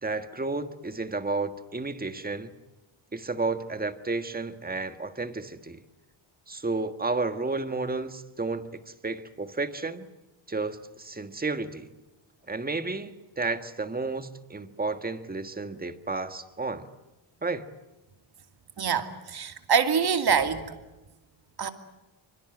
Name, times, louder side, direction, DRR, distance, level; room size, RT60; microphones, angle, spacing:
voice 1, 0.0-2.5 3.1-5.8 6.5-10.1 10.5-11.9 12.5-16.9 17.4-17.6, right 3 dB, 20° right, 1.5 m, -32 dB
voice 2, 18.8-20.6 21.6-21.7, right 6 dB, 50° right, 2.6 m, -25 dB
27.5 x 26.0 x 7.8 m
wide cardioid pair, 165°, 48 cm